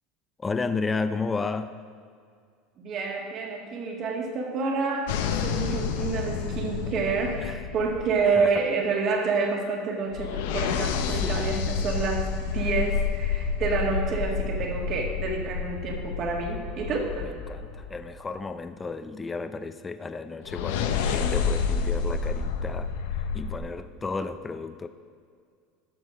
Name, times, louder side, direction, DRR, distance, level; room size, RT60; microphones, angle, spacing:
voice 1, 0.4-1.8 7.4-7.5 8.4-8.5 11.2-11.5 14.1-14.2 17.5-17.6 17.9-22.9 23.3-24.9, left 4 dB, 20° left, 11 dB, 0.5 m, -32 dB
voice 2, 2.8-17.3, right 4 dB, 45° right, 2 dB, 1.9 m, -28 dB
sound 1, 5.1-8.6 10.1-18.1 20.5-23.6, left 6 dB, 80° left, 0.7 m, -29 dB
12.0 x 6.4 x 5.1 m, 2.2 s
supercardioid pair, 115°, 0 cm